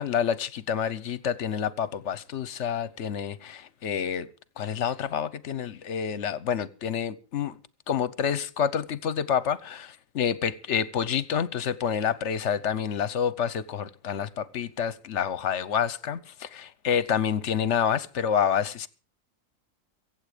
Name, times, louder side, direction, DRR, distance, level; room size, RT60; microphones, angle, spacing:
voice 1, 0.0-4.3 4.6-7.6 7.9-18.9, left 8 dB, 65° left, 1.1 m, -28 dB
24.0 x 8.2 x 5.0 m
omnidirectional pair, 1.4 m